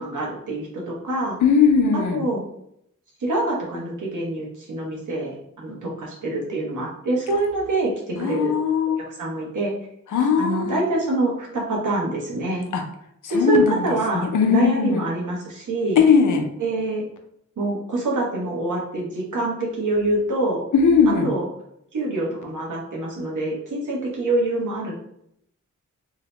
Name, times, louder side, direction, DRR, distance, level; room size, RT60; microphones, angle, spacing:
voice 1, 0.0-1.4 2.1-2.4 3.2-8.5 9.1-9.7 10.4-12.7 13.3-16.0 16.6-17.0 17.6-20.6 21.2-21.5 21.9-24.9, right 2 dB, 75° right, -3 dB, 0.9 m, -25 dB
voice 2, 1.4-2.2 8.2-9.0 10.1-10.8 12.7-12.8 13.3-13.9 14.2-15.0 16.0-16.5 20.7-21.3, left 6 dB, 80° left, 4 dB, 0.5 m, -19 dB
2.8 x 2.1 x 2.9 m, 0.74 s
cardioid pair, 65°, 31 cm